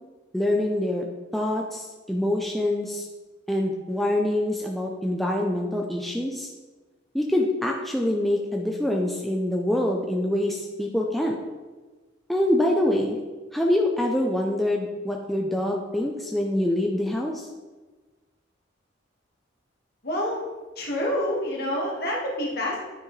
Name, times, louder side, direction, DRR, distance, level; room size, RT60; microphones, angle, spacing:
voice 1, 0.3-1.1 1.3-3.1 3.5-6.5 7.1-11.4 12.3-13.2 13.5-17.5, left 1 dB, ahead, -1 dB, 0.5 m, -25 dB
voice 2, 20.0-20.4 20.8-22.8, left 1 dB, 50° left, -3 dB, 1.7 m, -27 dB
9.4 x 5.9 x 3.2 m, 1.3 s
head